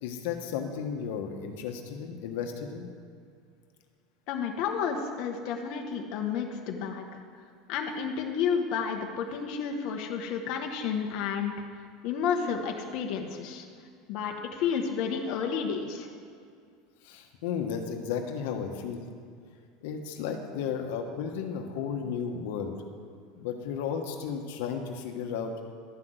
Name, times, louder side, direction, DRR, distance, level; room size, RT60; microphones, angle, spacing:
voice 1, 0.0-2.9 17.0-19.1 19.8-22.8 23.3-25.5, left 7 dB, 75° left, 4 dB, 1.2 m, -34 dB
voice 2, 4.3-7.1 7.7-11.5 12.0-13.7 14.1-16.1, left 6 dB, 50° left, 2 dB, 1.1 m, -31 dB
12.5 x 5.9 x 8.0 m, 2.2 s
supercardioid pair, 150°, 0 cm